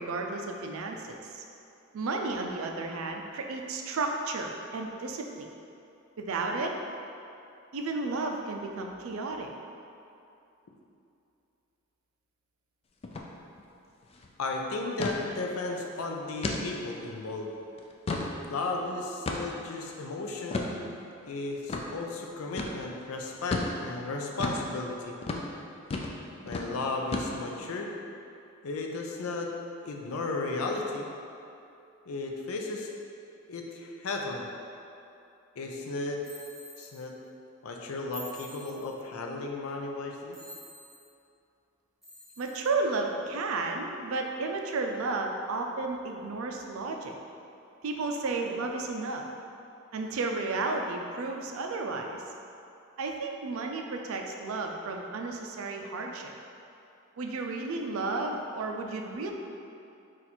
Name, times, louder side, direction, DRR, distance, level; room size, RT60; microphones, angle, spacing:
voice 1, 0.0-1.4 1.9-5.5 6.2-6.7 7.7-9.5 42.4-47.1 47.8-49.2 49.9-52.2 53.0-56.3 57.2-59.3, right 3 dB, 75° right, 2 dB, 0.4 m, -33 dB
sound 1, 13.0-13.3 13.6-13.7 14.0-14.3 15.0-15.2 15.7-15.8 16.4-16.6 17.1-17.2 17.8-18.3 19.3-19.6 20.5-20.7 21.7-21.9 22.6-22.8 23.5-23.7 24.4-24.6 25.2-25.5 25.9-26.2 26.5-26.7 27.1-27.6, left 2 dB, 30° left, 0.3 m, -32 dB
voice 2, 14.4-17.5 18.5-20.7 21.2-25.2 26.4-27.9 28.6-29.5 29.8-31.1 32.1-32.9 33.5-34.5 35.6-36.2 36.8-37.1 37.6-40.4, left 3 dB, 90° left, 1 dB, 0.5 m, -34 dB
sound 2, 36.2-36.9 38.1-39.0 40.3-41.0 42.0-42.7, equal, ahead, 0.9 m, -47 dB
4.2 x 2.5 x 4.1 m, 2.7 s
head